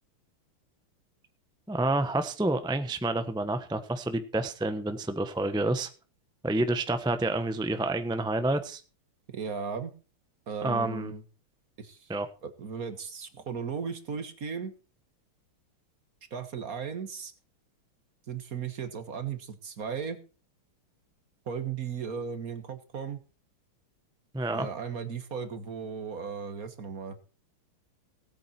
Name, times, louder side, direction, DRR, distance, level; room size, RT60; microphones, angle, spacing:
voice 1, 1.7-5.9 6.4-8.8 10.6-11.1 12.1-12.3 24.3-24.7, right 2 dB, 5° right, 9 dB, 0.5 m, -28 dB
voice 2, 9.3-9.9 10.5-11.2 11.8-12.1 12.4-14.7 16.3-17.3 18.3-20.2 21.5-23.2 24.5-27.2, right 6 dB, 45° right, 10 dB, 1.7 m, -36 dB
18.0 x 8.8 x 4.4 m, 0.35 s
omnidirectional pair, 2.4 m